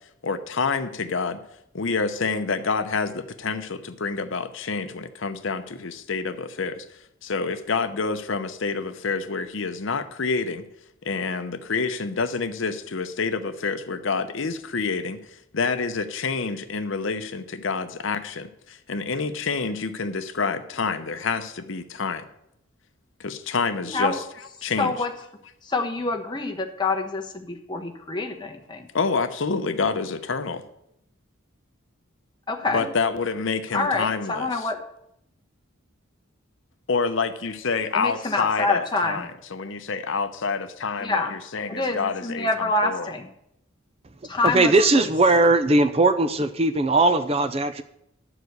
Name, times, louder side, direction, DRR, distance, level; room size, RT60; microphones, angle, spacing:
voice 1, 0.2-1.4 1.7-6.8 7.2-10.6 11.0-15.2 15.5-22.2 23.2-24.2 24.6-24.9 28.9-30.6 32.7-34.7 36.9-43.1, left 4 dB, 65° left, 10 dB, 0.7 m, -27 dB
voice 2, 23.8-24.1 24.8-25.1 25.6-28.9 32.5-32.9 33.7-34.8 37.9-39.3 41.0-41.3 41.7-43.3 44.3-45.1, left 3 dB, 20° left, 3 dB, 1.0 m, -26 dB
voice 3, 44.4-47.8, right 2 dB, 30° right, 10 dB, 0.5 m, -19 dB
11.5 x 4.9 x 7.9 m, 0.79 s
head